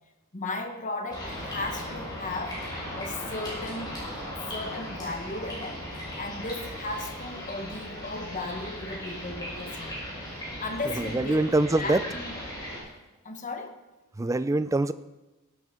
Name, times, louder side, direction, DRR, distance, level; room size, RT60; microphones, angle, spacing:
voice 1, 0.3-2.6 2.9-4.0 4.5-10.1 10.6-12.4 13.2-13.8, left 2 dB, 35° left, 6 dB, 1.1 m, -36 dB
sound 1, 1.1-12.8, equal, 20° left, 5.1 m, -37 dB
voice 2, 11.0-12.0 14.2-14.9, right 2 dB, 15° right, 14 dB, 0.3 m, -24 dB
16.5 x 9.3 x 3.7 m, 1.1 s
head